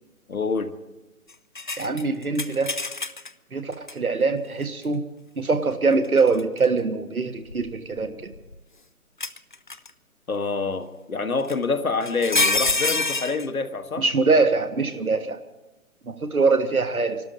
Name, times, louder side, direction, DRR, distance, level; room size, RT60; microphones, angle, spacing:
voice 1, 0.3-0.7 10.3-14.0, left 4 dB, 75° left, 8 dB, 1.5 m, -26 dB
sound 1, 1.5-3.3 3.9-4.0 6.0-6.6 7.5-8.6 9.2-9.9 11.5-11.6 12.0-13.5, left 3 dB, 40° left, 0.4 m, -26 dB
voice 2, 1.8-2.7 3.5-5.0 5.4-8.2 14.0-15.4 16.1-17.2, right 4 dB, 75° right, 7 dB, 1.6 m, -23 dB
26.0 x 12.5 x 3.9 m, 1.0 s
figure-of-eight pair, 140°, 43 cm